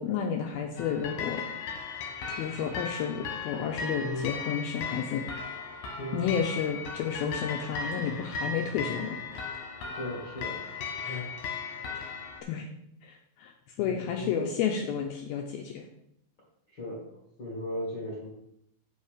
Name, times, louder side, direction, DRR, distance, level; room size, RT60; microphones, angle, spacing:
voice 1, 0.0-1.4 2.4-5.2 6.1-9.4 11.0-11.2 12.5-12.7 13.0-13.5 13.8-15.8, left 7 dB, 85° left, 2 dB, 2.2 m, -31 dB
sound 1, 0.8-12.4, left 5 dB, 65° left, 2.4 m, -37 dB
voice 2, 6.0-6.3 9.9-10.6 11.0-11.3 13.8-14.5 16.7-18.3, left 1 dB, 45° left, -5 dB, 1.5 m, -37 dB
8.3 x 5.6 x 5.0 m, 0.76 s
omnidirectional pair, 5.0 m